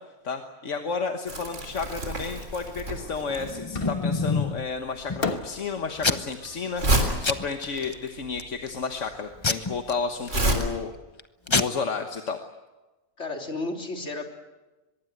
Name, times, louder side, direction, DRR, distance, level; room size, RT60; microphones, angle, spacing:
voice 1, 0.2-10.9 11.5-12.4, left 5 dB, 85° left, 5 dB, 1.7 m, -32 dB
Crumpling crinkling, 1.3-10.5, right 1 dB, 85° right, 4.1 m, -30 dB
Packing tape duct tape / Tearing, 3.2-4.6 5.1-5.6 6.0-6.5 6.8-7.0 7.2-7.9 8.4-8.8 9.4-10.7 11.2-11.3 11.5-11.6, left 3 dB, 25° left, 1.0 m, -27 dB
Fireworks, 3.7-4.4 5.2-8.3, left 4 dB, 55° left, 1.5 m, -37 dB
voice 2, 13.2-14.3, left 2 dB, 70° left, 2 dB, 3.7 m, -32 dB
23.5 x 22.5 x 8.0 m, 1.1 s
omnidirectional pair, 1.2 m